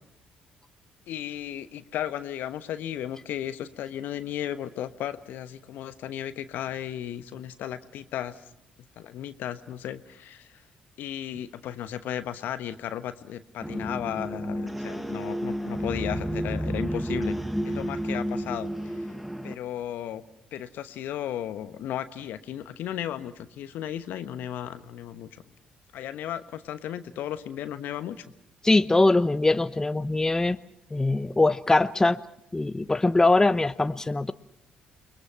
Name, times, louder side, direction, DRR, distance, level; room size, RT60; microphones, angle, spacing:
voice 1, 1.1-8.4 9.0-10.6 11.0-17.4 17.6-19.1 19.4-20.2 20.5-25.4 25.9-28.2, left 11 dB, 60° left, 12 dB, 1.1 m, -35 dB
sound 1, 13.6-19.5, equal, 5° right, 1.4 m, -31 dB
voice 2, 28.6-30.6 30.9-32.2 32.5-34.3, left 2 dB, 15° left, 13 dB, 0.8 m, -22 dB
29.0 x 22.0 x 5.9 m, 0.78 s
figure-of-eight pair, 45°, 4 cm